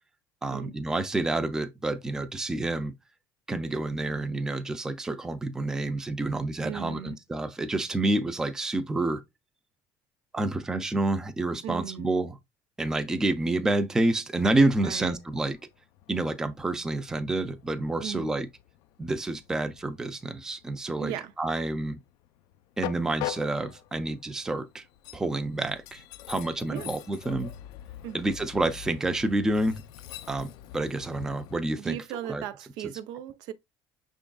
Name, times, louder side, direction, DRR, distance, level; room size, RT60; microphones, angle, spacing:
voice 1, 0.4-2.9 3.5-9.2 10.3-12.4 12.8-15.6 16.1-18.5 19.0-22.0 22.8-24.8 25.1-27.5 28.1-29.8 30.3-32.0 32.3-32.4, right 2 dB, 10° right, 0.4 m, -28 dB
voice 2, 6.6-7.2 11.6-12.1 14.8-15.2 18.0-18.3 21.0-21.3 26.7-26.9 28.0-28.2 31.8-33.5, right 11 dB, 70° right, 0.5 m, -37 dB
Train, 14.9-31.6, left 14 dB, 65° left, 0.4 m, -44 dB
6.1 x 3.5 x 2.3 m
cardioid pair, 160°, 7 cm